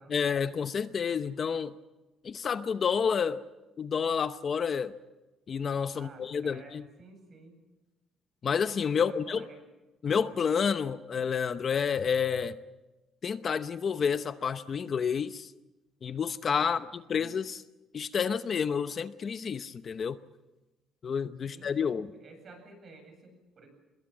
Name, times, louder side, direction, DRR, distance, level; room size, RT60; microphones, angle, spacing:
voice 1, 0.1-1.7 2.2-3.4 3.8-4.9 5.5-6.8 8.4-9.4 10.0-12.6 13.2-15.5 16.0-17.6 17.9-20.2 21.0-22.1, left 6 dB, 40° left, 11 dB, 0.8 m, -29 dB
voice 2, 5.9-7.6 9.1-9.6 16.6-17.3 21.4-23.7, right 3 dB, 40° right, 5 dB, 8.0 m, -52 dB
25.5 x 21.5 x 7.4 m, 1.1 s
cardioid pair, 135°, 0 cm